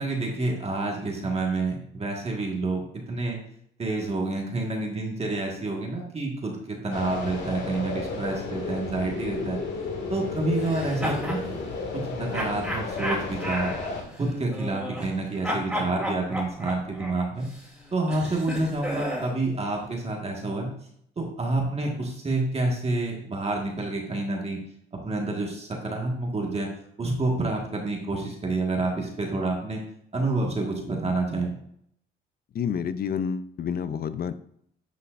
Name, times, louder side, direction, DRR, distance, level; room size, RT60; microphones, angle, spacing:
voice 1, 0.0-2.8 3.1-3.4 3.8-9.6 10.1-11.6 11.9-13.7 14.2-17.5 17.9-20.7 21.2-24.6 25.0-26.7 27.0-29.8 30.1-31.5, right 2 dB, 30° right, 0 dB, 1.7 m, -28 dB
sound 1, 6.9-14.0, left 4 dB, 70° left, 2.1 m, -33 dB
sound 2, 10.6-11.4 12.3-15.2 15.4-19.4, equal, 5° right, 3.0 m, -33 dB
voice 2, 32.5-34.3, left 7 dB, 50° left, 13 dB, 0.6 m, -29 dB
10.0 x 5.7 x 2.6 m, 0.69 s
cardioid pair, 90°, 20 cm